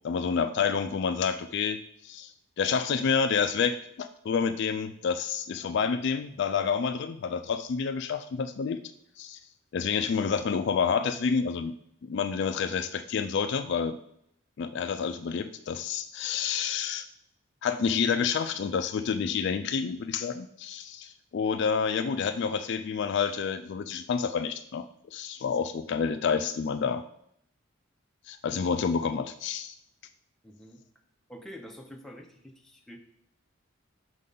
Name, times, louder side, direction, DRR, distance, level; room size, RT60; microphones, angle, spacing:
voice 1, 0.0-8.8 9.2-9.4 9.7-11.7 12.0-14.0 14.6-17.1 17.6-24.8 25.1-27.0 28.3-29.7, left 6 dB, 55° left, 10 dB, 0.3 m, -29 dB
voice 2, 30.4-30.8 31.3-33.0, equal, ahead, 1 dB, 0.7 m, -46 dB
6.5 x 3.8 x 5.3 m, 0.72 s
head